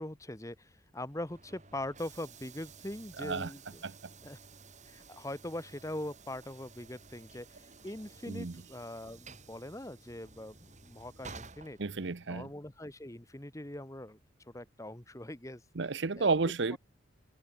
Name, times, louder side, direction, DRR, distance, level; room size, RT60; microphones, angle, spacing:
voice 1, 0.0-3.8 4.2-4.4 4.8-11.8 12.3-14.2 14.5-15.6 16.2-16.3 16.7-16.8, left 1 dB, 15° left, 1.3 m, -42 dB
Train / Sliding door, 1.0-12.5, right 4 dB, 40° right, 4.8 m, -53 dB
voice 2, 3.2-3.5 3.8-3.9 8.3-8.6 11.8-12.5 15.8-16.8, right 4 dB, 65° right, 0.8 m, -31 dB
open air
head